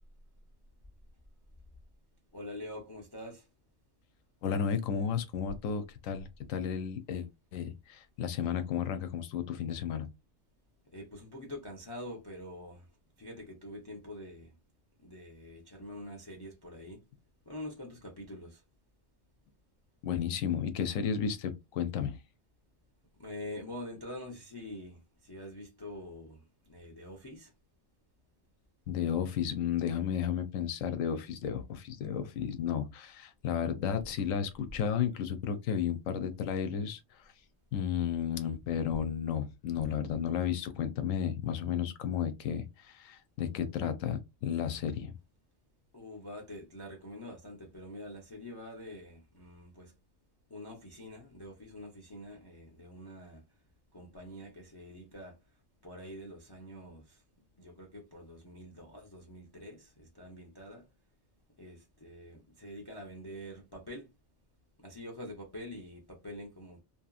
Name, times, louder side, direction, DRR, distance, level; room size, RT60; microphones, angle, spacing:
voice 1, 2.3-3.5 10.9-12.9 13.2-14.5 15.0-17.0 17.5-18.6 23.2-27.5 45.9-49.9 50.5-53.4 53.9-55.4 55.8-57.2 57.6-60.9 61.6-64.1 64.8-66.8, left 1 dB, 30° left, 0.4 m, -45 dB
voice 2, 4.4-10.1 20.0-22.2 28.9-37.0 37.7-45.1, left 8 dB, 90° left, 1.0 m, -33 dB
2.8 x 2.6 x 2.4 m
omnidirectional pair, 1.3 m